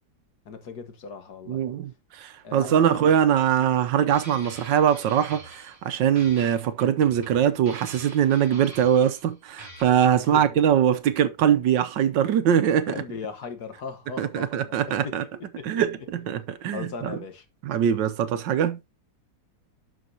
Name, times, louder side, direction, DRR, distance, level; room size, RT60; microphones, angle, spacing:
voice 1, 0.5-1.7 2.4-3.1 10.2-10.8 12.9-14.7 15.0-15.2 15.6-15.8 16.7-17.5, left 5 dB, 60° left, 1.7 m, -38 dB
voice 2, 1.5-12.9 14.2-15.2 15.6-17.2 17.6-18.8, right 9 dB, 75° right, 1.4 m, -22 dB
sound 1, 4.1-5.9 6.2-9.3 9.6-9.8, right 1 dB, 10° right, 5.2 m, -45 dB
11.5 x 5.7 x 2.7 m
omnidirectional pair, 2.0 m